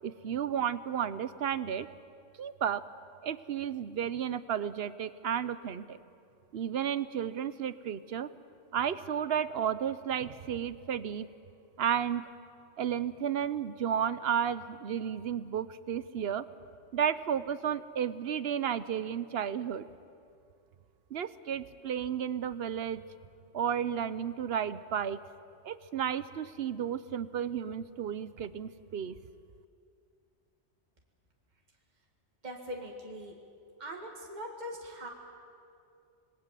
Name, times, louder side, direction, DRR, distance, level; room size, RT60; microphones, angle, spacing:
voice 1, 0.0-1.9 2.4-2.8 3.2-6.0 6.5-8.3 8.7-11.3 11.8-12.2 12.8-16.4 16.9-19.9 21.1-23.0 23.5-25.2 25.6-29.1, right 8 dB, 60° right, 15 dB, 0.9 m, -32 dB
voice 2, 32.4-33.3 33.8-35.1, equal, 35° right, 0 dB, 2.3 m, -41 dB
26.5 x 21.0 x 7.6 m, 2.4 s
omnidirectional pair, 1.2 m